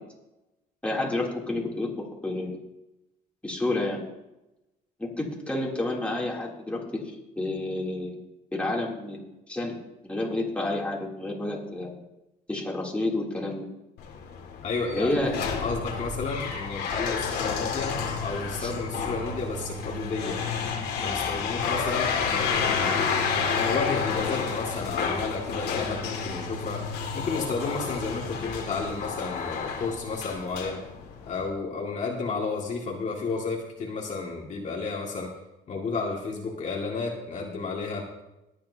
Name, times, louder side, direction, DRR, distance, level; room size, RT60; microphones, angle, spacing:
voice 1, 0.8-2.6 3.4-4.0 5.0-7.0 7.4-8.2 8.5-9.2 9.5-9.8 10.0-11.9 12.5-13.7 14.9-15.4 18.6-18.7, left 2 dB, 5° left, -4 dB, 3.1 m, -29 dB
sound 1, 14.0-31.5, left 5 dB, 85° left, 2.3 m, -30 dB
voice 2, 14.6-17.9 18.2-20.4 21.0-23.0 23.3-26.8 27.1-30.8 31.3-35.3 35.7-38.0, left 4 dB, 45° left, -1 dB, 2.2 m, -32 dB
20.5 x 9.0 x 2.8 m, 0.93 s
cardioid pair, 110°, 17 cm